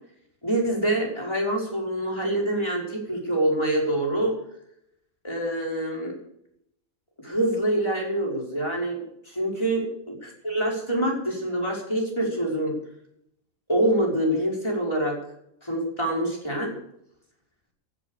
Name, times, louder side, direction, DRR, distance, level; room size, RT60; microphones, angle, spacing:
voice 1, 0.4-4.3 5.2-6.1 7.2-12.8 13.7-15.2 15.6-16.8, right 1 dB, 20° left, -2 dB, 5.6 m, -26 dB
15.5 x 11.5 x 6.7 m, 0.74 s
omnidirectional pair, 1.5 m